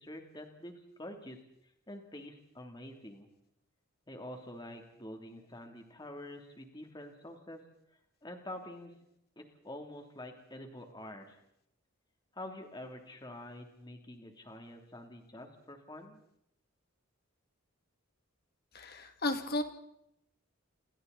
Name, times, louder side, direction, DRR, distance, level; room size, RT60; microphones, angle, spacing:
voice 1, 0.0-1.4 1.9-3.3 4.1-7.6 8.2-8.9 9.4-11.4 12.3-16.2, left 1 dB, 20° left, 3 dB, 3.1 m, -47 dB
voice 2, 18.7-19.6, left 2 dB, 45° left, 6 dB, 2.6 m, -33 dB
29.0 x 24.5 x 4.2 m, 0.77 s
head